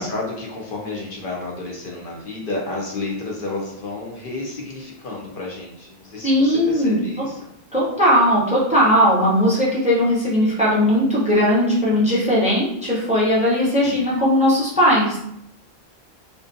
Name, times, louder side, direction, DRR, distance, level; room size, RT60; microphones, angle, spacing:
voice 1, 0.0-7.5 13.8-14.0, left 2 dB, 65° left, -2 dB, 0.7 m, -31 dB
voice 2, 6.2-7.0 7.7-15.2, equal, 10° right, -6 dB, 0.5 m, -18 dB
2.5 x 2.2 x 2.5 m, 0.76 s
omnidirectional pair, 1.1 m